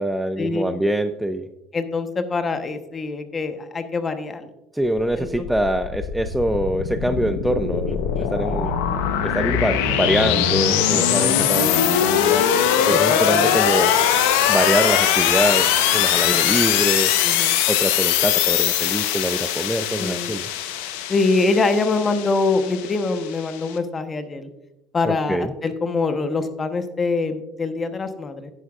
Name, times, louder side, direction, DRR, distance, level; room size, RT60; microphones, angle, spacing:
voice 1, 0.0-1.5 4.7-8.8 9.2-12.4 12.9-14.0 14.5-17.1 17.7-20.5 25.0-25.5, right 1 dB, 5° right, 9 dB, 0.5 m, -24 dB
voice 2, 1.7-4.5 5.2-5.5 7.9-8.8 10.9-11.3 12.9-13.6 16.2-16.6 17.2-17.6 20.0-20.4 21.1-24.5 24.9-28.5, left 3 dB, 25° left, 8 dB, 1.0 m, -25 dB
sound 1, 5.3-23.7, left 9 dB, 80° left, 1.0 m, -21 dB
11.0 x 10.0 x 2.5 m, 0.92 s
supercardioid pair, 95°, 0 cm